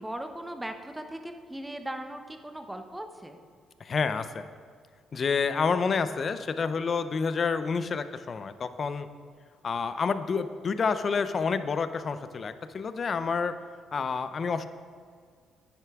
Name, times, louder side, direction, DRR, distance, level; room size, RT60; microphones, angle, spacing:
voice 1, 0.0-3.4, right 1 dB, 10° right, 6 dB, 0.8 m, -38 dB
voice 2, 3.8-4.5 5.1-9.1 9.6-13.5 13.9-14.7, left 5 dB, 45° left, 11 dB, 0.5 m, -29 dB
10.5 x 9.3 x 3.6 m, 2.1 s
cardioid pair, 90°, 0 cm